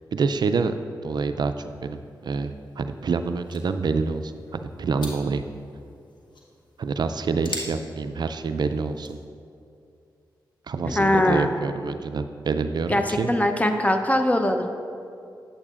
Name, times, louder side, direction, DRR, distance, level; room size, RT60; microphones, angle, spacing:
voice 1, 0.1-0.7 1.0-2.0 2.2-5.4 6.8-9.2 10.7-13.3, right 4 dB, 65° right, 9 dB, 0.4 m, -27 dB
sound 1, 1.5-9.3, left 2 dB, 75° left, 1.1 m, -44 dB
voice 2, 10.9-11.5 12.9-13.0 13.3-14.7, left 1 dB, 20° left, 6 dB, 0.7 m, -21 dB
8.8 x 8.6 x 2.4 m, 2.5 s
cardioid pair, 50°, 8 cm